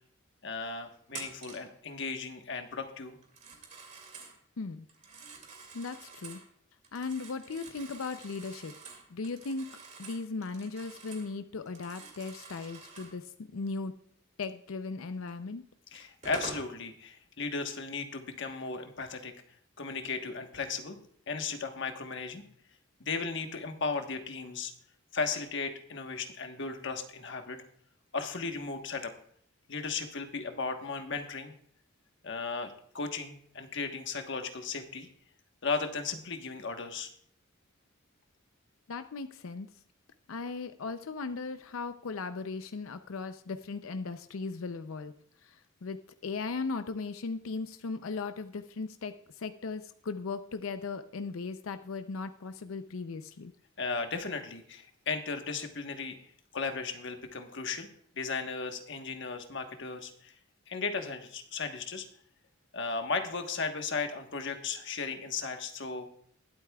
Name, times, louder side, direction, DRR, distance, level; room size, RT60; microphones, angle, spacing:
voice 1, 0.4-3.2 15.9-19.3 19.8-21.0 21.3-22.4 23.0-24.7 25.1-27.6 28.1-29.1 29.7-31.5 32.2-35.1 35.6-37.1 53.8-56.2 56.5-57.9 58.1-60.3 60.7-62.1 62.7-66.1, left 4 dB, 60° left, 6 dB, 1.2 m, -36 dB
Telephone, 1.1-1.7 3.2-4.4 4.9-6.5 6.8-11.3 11.6-13.2 15.3-15.4 15.9-16.7, right 4 dB, 35° right, 2.4 m, -47 dB
voice 2, 5.7-6.4 6.9-8.7 9.1-9.7 10.0-13.9 14.4-15.6 38.9-39.7 40.3-45.1 45.8-53.5, left 4 dB, 85° left, 10 dB, 0.5 m, -37 dB
21.0 x 8.2 x 2.3 m, 0.65 s
head